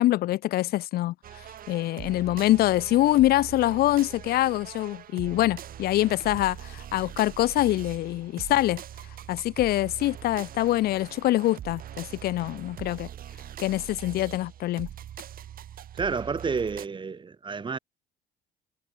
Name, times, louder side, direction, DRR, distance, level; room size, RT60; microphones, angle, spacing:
voice 1, 0.0-8.8 9.3-13.1 13.6-14.9, left 15 dB, 65° left, 0.6 m, -25 dB
Epic Trap Loop, 1.2-16.9, right 11 dB, 60° right, 6.2 m, -42 dB
voice 2, 15.9-17.8, right 5 dB, 30° right, 3.8 m, -30 dB
cardioid pair, 110°, 17 cm